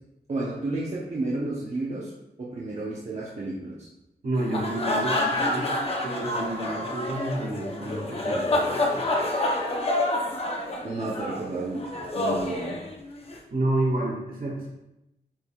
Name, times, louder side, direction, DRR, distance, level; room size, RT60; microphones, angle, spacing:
voice 1, 0.3-2.1 2.4-3.9 10.8-11.9 12.1-12.8, right 2 dB, 40° right, -5 dB, 0.9 m, -31 dB
voice 2, 4.2-5.7 6.0-9.0 13.5-14.7, right 1 dB, 60° right, -3 dB, 1.8 m, -29 dB
sound 1, 4.4-13.4, left 1 dB, 35° left, 0.8 m, -28 dB
8.9 x 4.8 x 2.4 m, 0.90 s
wide cardioid pair, 175°, 17 cm